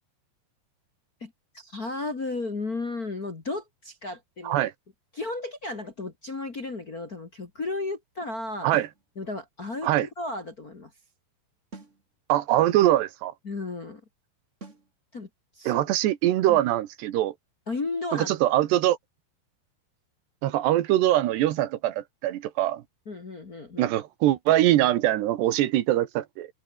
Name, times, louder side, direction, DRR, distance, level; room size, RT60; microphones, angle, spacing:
voice 1, 1.2-4.6 5.1-8.7 9.1-10.9 13.4-14.0 15.1-15.3 15.5-15.8 16.5-16.6 17.7-18.3 23.0-23.9, left 3 dB, 35° left, 1.6 m, -34 dB
sound 1, 8.7-9.0 11.7-12.0 14.6-14.9, right 3 dB, 20° right, 2.5 m, -44 dB
voice 2, 12.3-13.3 15.7-17.3 18.1-19.0 20.4-22.8 23.8-26.5, right 14 dB, 90° right, 3.5 m, -23 dB
omnidirectional pair, 4.7 m